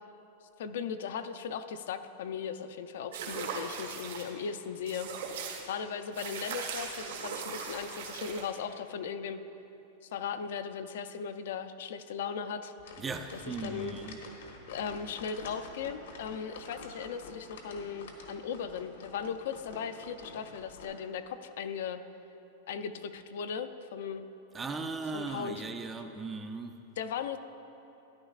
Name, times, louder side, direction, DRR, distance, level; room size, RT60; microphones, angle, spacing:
voice 1, 0.6-5.1 5.3-9.4 10.1-12.9 13.6-14.0 14.7-22.0 22.7-24.2 25.1-25.6 27.0-27.4, left 7 dB, 65° left, 0.4 m, -37 dB
sound 1, 3.1-4.3 4.9-5.6 6.1-8.5, right 6 dB, 75° right, 1.4 m, -39 dB
sound 2, 12.8-20.9, left 3 dB, 80° left, 1.3 m, -48 dB
voice 2, 13.0-14.2 24.5-26.8, right 4 dB, 10° right, 0.3 m, -38 dB
13.0 x 10.5 x 2.4 m
supercardioid pair, 175°, 0 cm